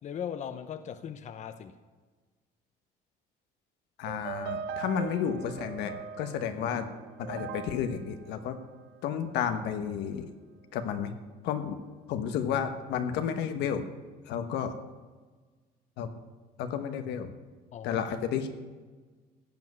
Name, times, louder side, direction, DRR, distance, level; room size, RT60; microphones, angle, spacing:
voice 1, 0.0-1.8 17.7-18.0, left 8 dB, 45° left, 10 dB, 0.7 m, -38 dB
voice 2, 4.0-6.9 7.2-8.6 9.0-10.3 10.7-11.1 11.4-11.8 12.1-13.9 14.3-14.7 16.0-16.1 16.6-17.3 17.8-18.5, left 8 dB, 85° left, 8 dB, 1.1 m, -31 dB
sound 1, 4.1-9.4, right 7 dB, 85° right, 0.7 m, -41 dB
15.5 x 5.2 x 9.4 m, 1.4 s
cardioid pair, 110°, 17 cm